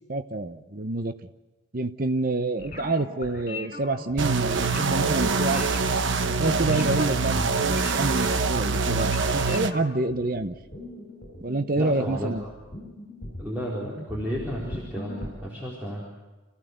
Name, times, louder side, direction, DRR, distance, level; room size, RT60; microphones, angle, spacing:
voice 1, 0.1-1.1 1.7-5.6 6.4-10.6 11.4-12.4, right 2 dB, 45° right, 9 dB, 0.8 m, -27 dB
sound 1, 2.6-15.3, left 2 dB, 35° left, 5.2 m, -40 dB
sound 2, 4.2-9.7, right 4 dB, 75° right, 1.0 m, -24 dB
voice 2, 11.7-12.3 13.4-16.0, equal, 10° right, -6 dB, 4.2 m, -32 dB
27.5 x 16.0 x 7.9 m, 1.2 s
head